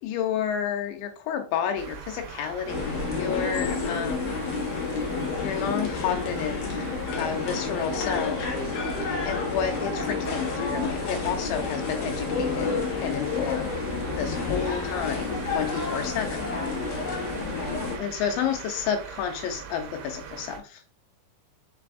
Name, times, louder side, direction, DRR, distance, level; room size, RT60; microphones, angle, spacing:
voice 1, 0.0-4.3 5.4-6.8 7.2-8.5 9.2-12.7 13.0-13.8 14.1-16.5 18.0-20.8, left 8 dB, 90° left, 3.0 m, -30 dB
sound 1, 1.8-20.6, right 7 dB, 80° right, 3.0 m, -41 dB
sound 2, 2.7-18.0, left 4 dB, 65° left, 2.2 m, -30 dB
voice 2, 16.5-17.8, left 3 dB, 30° left, 1.9 m, -43 dB
6.7 x 3.4 x 2.2 m
omnidirectional pair, 5.1 m